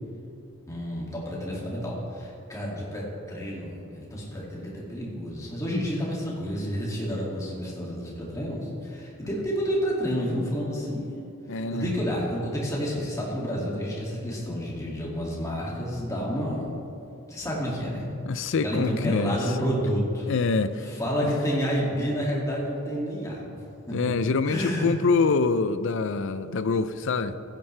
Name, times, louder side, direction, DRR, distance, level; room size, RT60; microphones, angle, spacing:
voice 1, 0.7-11.1 11.5-16.7 17.3-18.1 18.6-20.3 20.8-24.0 24.5-24.9, equal, 15° left, -5 dB, 2.3 m, -30 dB
voice 2, 11.5-11.9 18.2-19.4 20.3-20.8 23.9-27.4, left 4 dB, 60° left, 12 dB, 0.5 m, -25 dB
15.5 x 9.2 x 3.3 m, 2.7 s
head